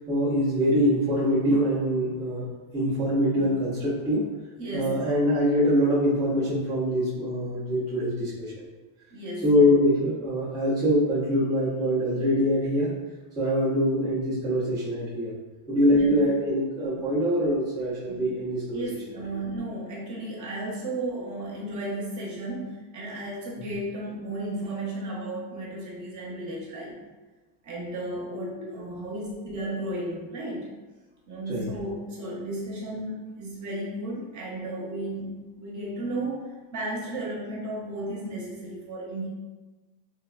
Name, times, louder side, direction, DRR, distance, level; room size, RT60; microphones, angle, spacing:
voice 1, 0.1-2.5 2.7-4.3 4.7-8.7 9.4-12.9 13.4-15.4 15.7-18.8 28.6-28.7 29.3-29.4 31.5-31.7, equal, 10° right, -11 dB, 0.4 m, -24 dB
voice 2, 4.6-5.0 9.1-9.7 15.9-16.2 17.0-17.1 18.1-18.3 18.7-27.0 27.6-30.7 31.3-36.4 36.7-39.3, right 1 dB, 40° right, -4 dB, 0.8 m, -34 dB
3.2 x 2.1 x 2.3 m, 1.2 s
cardioid pair, 155°, 48 cm